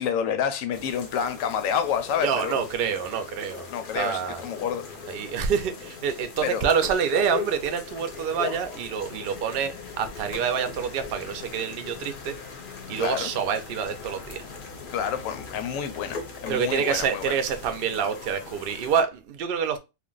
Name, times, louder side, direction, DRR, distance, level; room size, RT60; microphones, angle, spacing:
voice 1, 0.0-2.7 3.7-4.9 6.4-6.6 13.0-13.3 14.9-17.3, left 8 dB, 85° left, 1.0 m, -29 dB
sound 1, 0.7-19.0, left 5 dB, 55° left, 0.6 m, -39 dB
voice 2, 2.2-3.7 3.9-4.4 5.1-12.4 12.9-14.4 16.5-19.8, right 7 dB, 60° right, 0.6 m, -27 dB
2.5 x 2.1 x 3.7 m
omnidirectional pair, 1.3 m